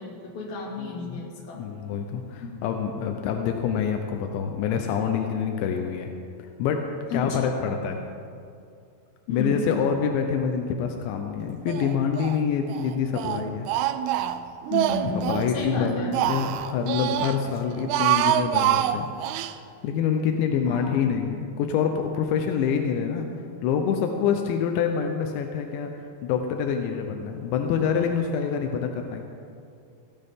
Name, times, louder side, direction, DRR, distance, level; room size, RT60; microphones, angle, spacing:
voice 1, 0.0-1.7 7.1-7.9 9.3-9.7 14.7-15.3 15.5-16.1 20.7-21.0, left 4 dB, 60° left, -2 dB, 4.0 m, -32 dB
voice 2, 0.8-1.2 1.6-6.1 6.6-6.8 7.1-8.0 9.3-13.7 15.0-19.1 19.8-23.3 23.6-25.9 26.2-29.2, left 7 dB, 85° left, 4 dB, 3.2 m, -26 dB
Speech, 11.7-12.4 12.7-15.5 15.9-17.4 17.8-19.5, right 12 dB, 85° right, 2.2 m, -26 dB
17.5 x 16.5 x 3.7 m, 2.4 s
omnidirectional pair, 5.1 m